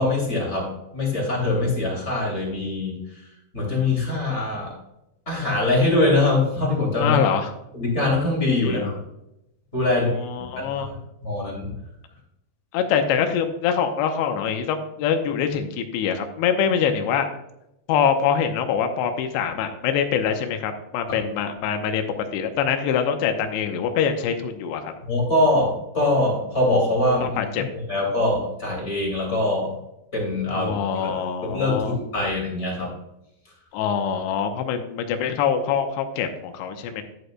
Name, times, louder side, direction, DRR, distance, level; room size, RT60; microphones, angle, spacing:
voice 1, 0.0-3.1 3.5-4.7 5.3-7.2 7.7-9.0 9.7-10.1 10.6-10.9 11.2-11.7 21.1-21.2 25.0-27.4 27.9-29.7 30.1-32.9, left 2 dB, 20° left, -2 dB, 2.1 m, -23 dB
voice 2, 7.0-7.5 8.6-8.9 9.9-10.9 12.7-17.3 17.9-22.0 22.3-24.9 27.2-27.6 30.5-32.0 33.7-37.0, left 7 dB, 85° left, 6 dB, 2.9 m, -24 dB
11.0 x 7.9 x 2.3 m, 0.85 s
omnidirectional pair, 5.0 m